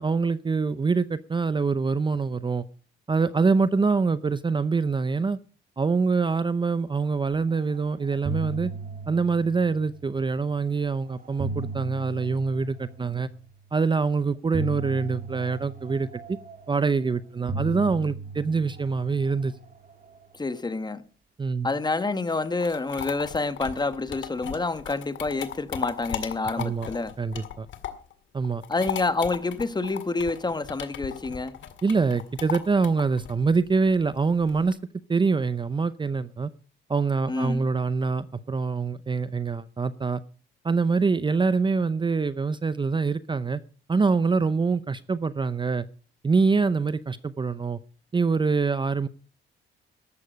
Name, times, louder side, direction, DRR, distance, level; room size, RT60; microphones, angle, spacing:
voice 1, 0.0-2.6 3.1-5.4 5.8-8.7 9.1-13.3 13.7-16.4 16.7-19.5 21.4-21.7 26.6-26.9 27.2-27.7 28.3-28.6 31.8-34.8 35.1-36.5 36.9-40.2 40.6-43.6 43.9-45.9 46.2-47.8 48.1-49.1, right 4 dB, 25° right, 0.7 m, -25 dB
sound 1, 7.6-10.4 11.1-13.5 14.5-17.0 17.5-20.1, right 3 dB, 45° right, 3.3 m, -36 dB
voice 2, 20.3-21.0 21.6-27.1 28.7-31.6 37.3-37.6, left 3 dB, 20° left, 1.2 m, -28 dB
sound 2, 22.3-28.1 28.4-34.7, left 10 dB, 75° left, 1.9 m, -37 dB
14.0 x 11.5 x 5.2 m
cardioid pair, 90°, 20 cm